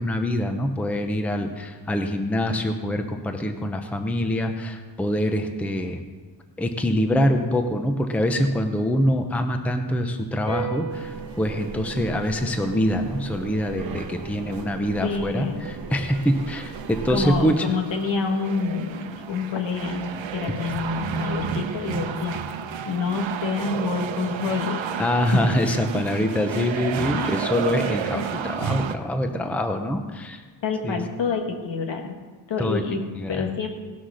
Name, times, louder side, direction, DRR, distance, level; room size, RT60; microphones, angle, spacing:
voice 1, 0.0-6.0 6.6-17.7 25.0-30.4 30.8-31.0 32.6-32.8 33.2-33.5, equal, 5° left, 6 dB, 0.6 m, -25 dB
sound 1, 10.5-17.2, right 5 dB, 10° right, 2.4 m, -40 dB
sound 2, 10.9-17.5, right 5 dB, 50° right, 0.8 m, -38 dB
voice 2, 15.0-15.7 17.1-22.5 22.9-24.8 25.3-25.4 27.1-27.4 28.1-28.3 30.6-32.2 32.5-33.7, left 4 dB, 75° left, 3 dB, 1.8 m, -27 dB
sound 3, 16.1-29.0, right 8 dB, 85° right, 0.9 m, -32 dB
18.0 x 6.2 x 6.3 m, 1.4 s
wide cardioid pair, 165°, 45 cm